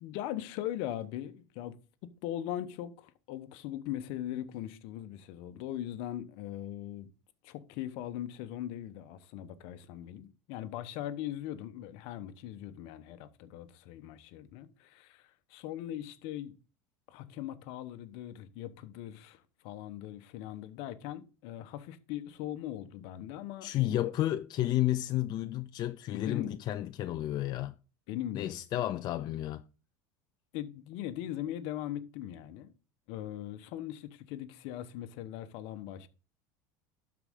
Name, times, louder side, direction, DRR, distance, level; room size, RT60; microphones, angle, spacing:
voice 1, 0.0-1.8 2.2-7.1 7.4-16.5 17.1-24.0 26.1-26.6 28.1-28.6 30.5-32.7 33.1-36.1, left 12 dB, 65° left, 1.0 m, -40 dB
voice 2, 23.6-27.7 28.3-29.6, left 14 dB, 45° left, 0.4 m, -31 dB
12.0 x 4.8 x 3.7 m
supercardioid pair, 100°, 10 cm